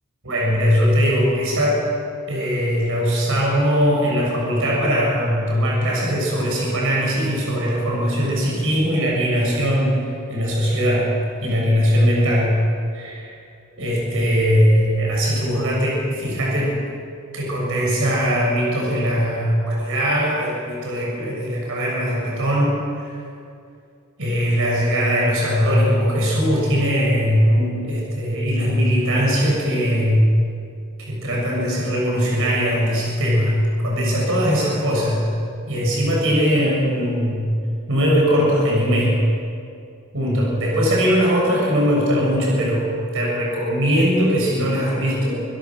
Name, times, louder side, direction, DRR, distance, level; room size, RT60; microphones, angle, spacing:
voice 1, 0.2-1.8 2.3-11.1 11.4-12.6 12.9-13.3 13.8-16.8 17.3-23.2 24.2-30.3 31.0-35.3 35.7-37.4 37.9-39.2 40.1-45.4, equal, 65° right, -3 dB, 7.3 m, -20 dB
25.0 x 16.5 x 6.5 m, 2.4 s
head